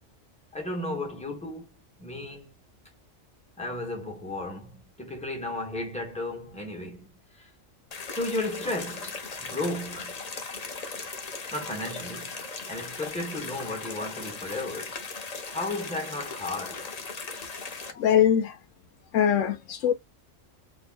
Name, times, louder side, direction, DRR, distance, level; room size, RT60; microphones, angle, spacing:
voice 1, 0.5-1.7 2.0-2.5 3.6-7.5 8.1-10.2 11.5-12.3 12.7-15.0 15.5-16.9, left 2 dB, 5° left, 1.3 m, -34 dB
sound 1, 7.9-17.9, left 4 dB, 35° left, 0.8 m, -38 dB
voice 2, 18.0-18.5 19.1-19.9, left 9 dB, 75° left, 0.9 m, -22 dB
4.0 x 3.1 x 2.5 m
omnidirectional pair, 1.3 m